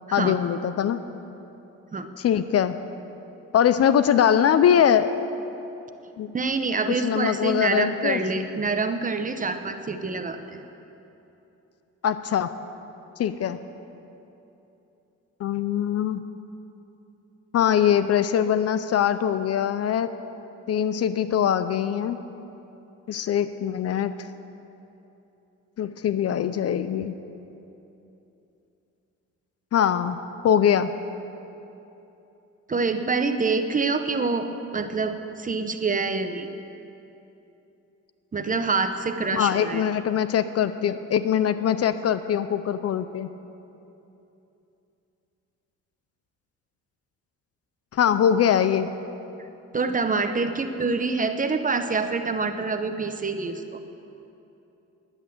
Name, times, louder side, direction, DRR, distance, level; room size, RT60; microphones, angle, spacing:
voice 1, 0.1-1.0 2.2-2.8 3.5-5.1 6.2-6.3 6.9-8.2 12.0-12.5 13.2-13.6 15.4-16.2 17.5-20.1 20.7-22.2 23.1-24.1 25.8-27.1 29.7-30.2 30.4-30.9 39.3-43.3 47.9-48.9, left 9 dB, 55° left, 12 dB, 0.6 m, -22 dB
voice 2, 6.3-10.6 32.7-34.5 34.7-36.5 38.3-39.8 49.7-53.8, right 4 dB, 25° right, 8 dB, 0.9 m, -26 dB
11.0 x 9.9 x 7.7 m, 2.9 s
cardioid pair, 90°, 30 cm